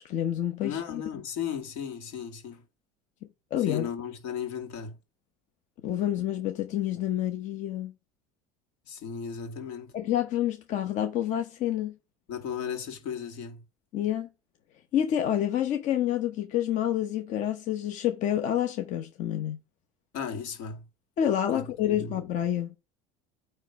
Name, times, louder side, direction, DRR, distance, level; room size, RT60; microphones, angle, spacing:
voice 1, 0.0-1.0 3.5-3.9 5.8-7.9 9.9-11.9 13.9-14.3 14.9-19.6 21.2-22.8, left 11 dB, 50° left, 0.9 m, -28 dB
voice 2, 0.6-2.6 3.7-5.0 8.9-9.9 12.3-13.6 20.1-20.9 21.5-22.2, left 7 dB, 75° left, 2.3 m, -35 dB
9.0 x 3.3 x 5.1 m
cardioid pair, 130°, 16 cm